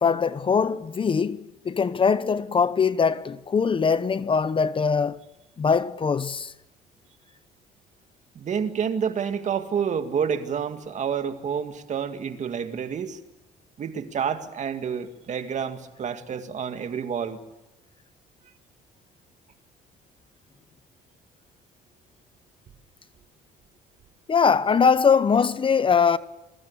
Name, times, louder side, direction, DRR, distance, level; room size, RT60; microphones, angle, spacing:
voice 1, 0.0-5.2 5.6-6.5 24.3-26.2, left 6 dB, 30° left, 0.9 m, -22 dB
voice 2, 8.4-13.2 13.8-17.4, right 7 dB, 45° right, 2.1 m, -29 dB
28.5 x 23.0 x 8.4 m
cardioid pair, 110°, 17 cm